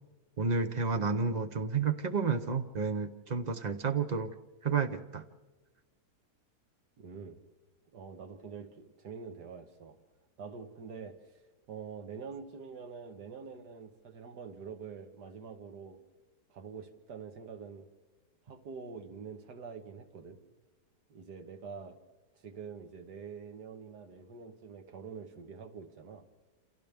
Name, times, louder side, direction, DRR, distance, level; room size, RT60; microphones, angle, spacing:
voice 1, 0.4-4.3 4.6-5.2, right 5 dB, 40° right, 7 dB, 0.6 m, -31 dB
voice 2, 7.0-7.4 7.9-10.0 10.4-11.3 11.7-16.0 16.5-17.9 18.5-20.4 21.1-22.0 22.4-26.3, right 5 dB, 80° right, 7 dB, 1.9 m, -46 dB
28.5 x 27.5 x 3.5 m, 1.2 s
omnidirectional pair, 1.8 m